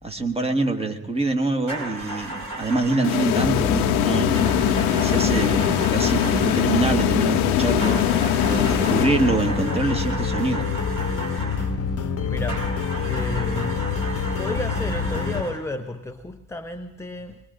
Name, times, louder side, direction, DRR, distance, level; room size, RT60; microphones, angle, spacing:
voice 1, 0.0-4.5 4.7-8.0 8.5-10.7, right 3 dB, 15° right, 5 dB, 1.5 m, -25 dB
sound 1, 1.7-3.3 4.3-6.8 7.8-11.8 12.5-15.7, right 2 dB, 45° right, 4.3 m, -34 dB
sound 2, 3.0-9.7, left 11 dB, 75° left, 0.9 m, -22 dB
sound 3, 3.3-15.4, left 5 dB, 35° left, 1.1 m, -26 dB
voice 2, 12.3-12.6 13.0-13.8 14.4-17.4, left 2 dB, 5° left, 7 dB, 0.6 m, -32 dB
22.5 x 22.0 x 2.6 m, 1.0 s
hypercardioid pair, 55°, 44 cm